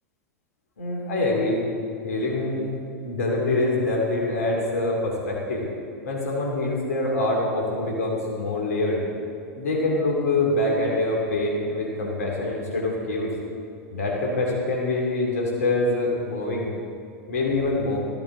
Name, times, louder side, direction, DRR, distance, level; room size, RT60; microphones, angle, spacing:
voice 1, 0.8-1.6 2.0-2.7 3.0-5.6 6.0-9.0 9.6-13.3 13.9-16.7 17.3-18.0, left 2 dB, 75° left, -2 dB, 2.4 m, -25 dB
14.5 x 8.5 x 3.8 m, 2.5 s
figure-of-eight pair, 90°, 8 cm